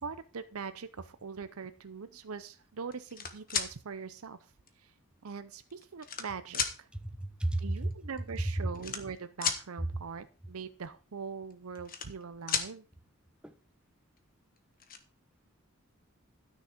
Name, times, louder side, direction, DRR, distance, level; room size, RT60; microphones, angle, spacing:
voice 1, 0.0-4.4 4.8-4.9 5.2-6.9 7.6-12.8, right 5 dB, 90° right, 0.6 m, -42 dB
sound 1, 2.9-3.7 4.7-4.8 5.6-6.3 6.5-6.7 7.9-8.0 8.2-8.4 8.7-9.6 11.5-12.2 12.5-12.7 14.2-14.3 14.6-15.0, left 7 dB, 45° left, 1.4 m, -33 dB
voice 2, 6.9-7.9 8.4-8.5 13.4-13.5, right 1 dB, 5° right, 0.9 m, -32 dB
13.0 x 6.4 x 5.1 m
head